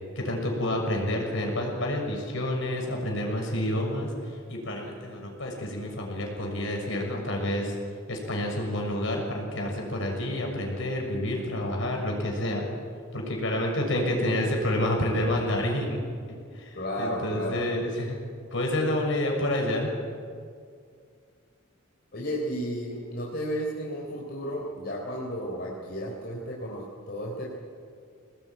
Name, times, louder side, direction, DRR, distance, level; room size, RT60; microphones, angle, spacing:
voice 1, 0.1-7.7 8.1-12.7 13.1-16.0 16.5-18.2 18.5-19.9, left 1 dB, 65° left, 1 dB, 6.5 m, -29 dB
voice 2, 16.8-17.6 22.1-27.5, equal, 50° left, -3 dB, 3.7 m, -33 dB
25.5 x 19.5 x 9.2 m, 2.2 s
head